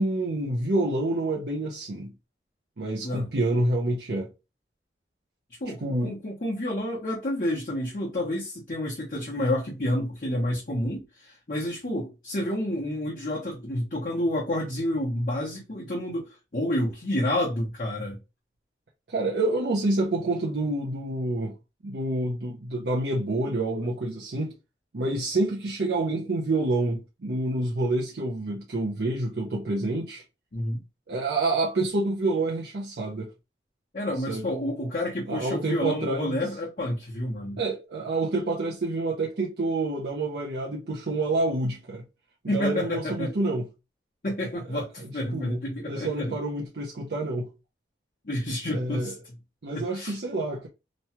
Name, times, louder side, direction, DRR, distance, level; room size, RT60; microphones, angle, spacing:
voice 1, 0.0-2.1 2.8-4.3 5.8-6.2 19.1-21.5 21.8-24.5 24.9-30.2 31.1-33.3 34.3-34.5 35.3-36.4 37.6-42.0 42.4-43.7 44.7-45.6 45.9-47.5 48.7-49.1 49.6-50.7, right 2 dB, 70° right, 0.6 m, -28 dB
voice 2, 5.6-18.2 30.5-30.8 33.9-37.6 42.5-43.3 44.2-46.3 48.2-49.2 49.7-50.2, left 1 dB, 50° left, 0.9 m, -29 dB
3.0 x 2.3 x 2.8 m
head